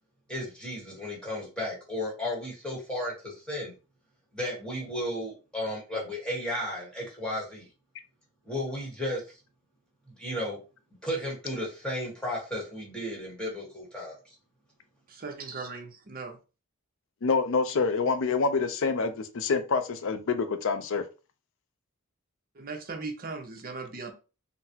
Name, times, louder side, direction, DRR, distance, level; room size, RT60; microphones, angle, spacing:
voice 1, 0.3-3.7 4.3-7.7 8.4-9.4 10.1-10.6 11.0-14.2, left 1 dB, 5° left, 1.2 m, -34 dB
voice 2, 15.1-16.4 22.5-24.1, right 4 dB, 40° right, 0.6 m, -38 dB
voice 3, 17.2-21.0, left 4 dB, 60° left, 0.4 m, -27 dB
3.9 x 2.0 x 2.7 m
head